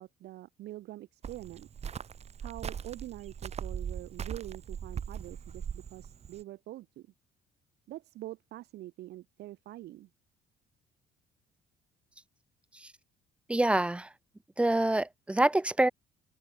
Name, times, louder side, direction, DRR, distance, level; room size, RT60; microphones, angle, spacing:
voice 1, 0.0-1.7 2.4-7.1 7.9-10.1, right 15 dB, 75° right, 4.2 m, -45 dB
Cricket, 1.2-6.4, right 7 dB, 40° right, 1.7 m, -40 dB
voice 2, 13.5-14.1 14.6-15.9, right 1 dB, 5° right, 0.4 m, -26 dB
open air
cardioid pair, 110°, 17 cm